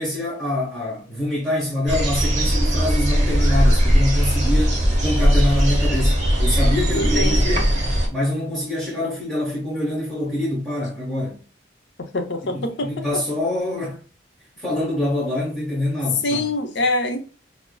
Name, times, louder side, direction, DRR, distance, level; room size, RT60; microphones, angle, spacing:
voice 1, 0.0-7.7 8.1-11.4 12.5-14.0 14.6-16.4, left 1 dB, 5° left, 1.3 m, -25 dB
sound 1, 1.9-8.1, equal, 40° right, 1.1 m, -19 dB
voice 2, 6.9-7.7 12.0-13.2 16.2-17.2, left 2 dB, 65° left, 0.6 m, -25 dB
5.9 x 2.1 x 2.2 m
head